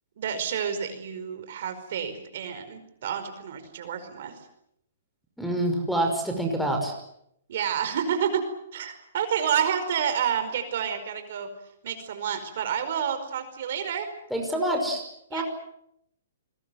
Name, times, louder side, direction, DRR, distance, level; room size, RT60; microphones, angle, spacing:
voice 1, 0.2-4.3 7.5-8.4 8.7-11.5 11.8-14.1 15.3-15.4, right 8 dB, 55° right, 9 dB, 5.0 m, -29 dB
voice 2, 5.4-7.0 14.3-15.0 15.3-15.4, right 1 dB, ahead, 4 dB, 5.5 m, -26 dB
29.5 x 21.0 x 7.8 m, 0.76 s
hypercardioid pair, 150°, 0 cm